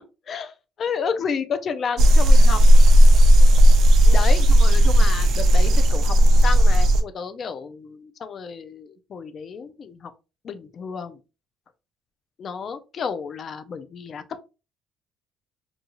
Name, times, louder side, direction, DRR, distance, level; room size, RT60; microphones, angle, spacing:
voice 1, 0.3-2.6 3.2-3.3 4.1-6.1 6.4-10.1 10.4-11.2 12.4-14.2, left 6 dB, 40° left, 0.4 m, -31 dB
sound 1, 2.0-7.0, equal, 55° right, 0.4 m, -13 dB
2.6 x 2.3 x 2.8 m
cardioid pair, 140°, 0 cm